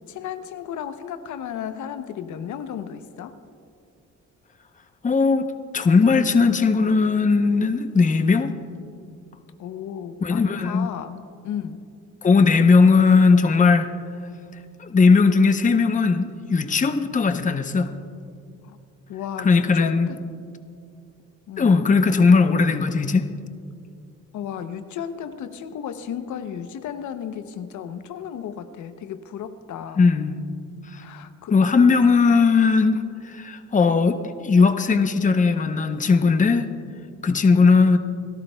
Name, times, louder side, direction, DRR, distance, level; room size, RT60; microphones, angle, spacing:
voice 1, 0.1-3.4 9.6-11.2 11.4-11.8 18.6-18.8 19.1-20.2 21.5-21.8 24.3-30.0 30.9-31.5, left 8 dB, 75° left, 10 dB, 0.7 m, -34 dB
voice 2, 5.0-5.5 5.7-8.5 10.2-10.9 12.2-13.9 14.8-17.9 19.4-20.1 21.6-23.3 30.0-30.4 30.9-31.0 31.5-36.7 37.2-38.0, left 4 dB, 25° left, 8 dB, 0.7 m, -18 dB
28.0 x 13.0 x 2.2 m, 2.4 s
cardioid pair, 90°, 30 cm